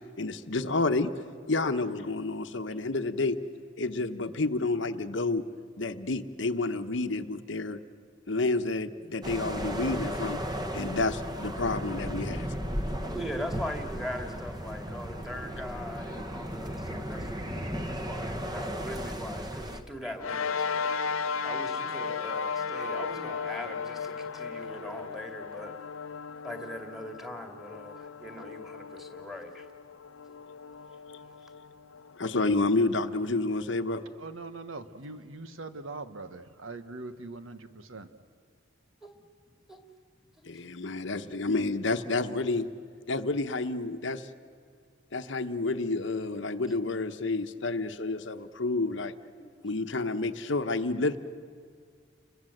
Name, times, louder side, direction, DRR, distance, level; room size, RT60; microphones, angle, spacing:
voice 1, 0.2-3.4 3.8-5.4 5.8-7.8 8.3-12.8 32.2-34.0 40.4-42.7 43.1-44.3 45.1-49.1 49.6-51.2, left 3 dB, 60° left, 9 dB, 1.0 m, -30 dB
sound 1, 9.2-19.8, equal, 20° right, 1.2 m, -35 dB
voice 2, 13.1-20.9 21.4-25.8 26.4-29.7 39.0-39.1 39.7-39.8, equal, ahead, 4 dB, 2.3 m, -40 dB
sound 2, 20.2-32.9, left 5 dB, 90° left, 0.8 m, -36 dB
voice 3, 34.2-38.1, right 3 dB, 80° right, 10 dB, 1.3 m, -42 dB
29.5 x 22.0 x 7.9 m, 2.1 s
head